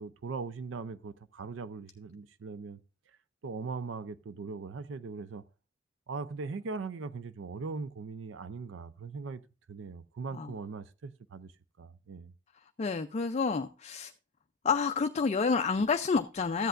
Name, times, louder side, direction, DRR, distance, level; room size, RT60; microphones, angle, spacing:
voice 1, 0.0-2.8 3.4-5.4 6.1-9.4 9.7-11.5 11.8-12.3, right 4 dB, 75° right, 0.5 m, -40 dB
voice 2, 12.8-14.1 14.6-16.7, left 5 dB, 35° left, 0.4 m, -29 dB
13.5 x 8.0 x 2.5 m
head